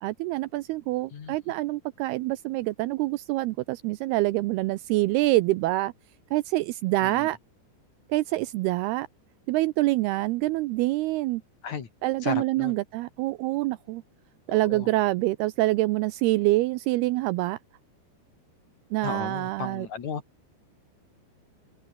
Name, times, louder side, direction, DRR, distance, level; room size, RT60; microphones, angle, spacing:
voice 1, 0.0-5.9 6.3-7.4 8.1-9.1 9.5-11.4 12.0-14.0 14.5-17.6 18.9-19.9, right 18 dB, 80° right, 2.4 m, -26 dB
voice 2, 12.2-12.8 14.5-14.9 19.0-20.2, left 6 dB, 45° left, 3.4 m, -35 dB
open air
omnidirectional pair, 5.0 m